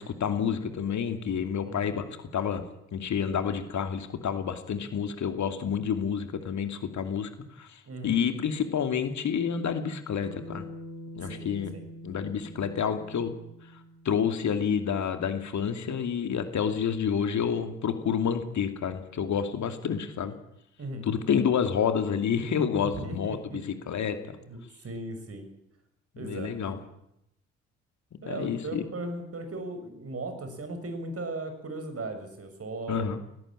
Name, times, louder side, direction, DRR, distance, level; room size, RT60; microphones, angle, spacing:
voice 1, 0.0-2.6 2.9-7.3 7.6-10.6 11.2-11.7 12.0-13.3 14.0-20.3 21.0-24.4 26.1-26.8 28.2-28.8 32.9-33.2, left 7 dB, 50° left, 8 dB, 2.7 m, -29 dB
voice 2, 7.8-8.2 11.2-11.9 20.8-21.1 22.8-23.6 24.5-25.4 26.2-26.5 28.2-33.1, right 2 dB, 40° right, 7 dB, 6.7 m, -37 dB
Bass guitar, 10.2-14.7, equal, 75° right, 5.4 m, -45 dB
21.0 x 18.5 x 8.9 m, 0.81 s
figure-of-eight pair, 45°, 37 cm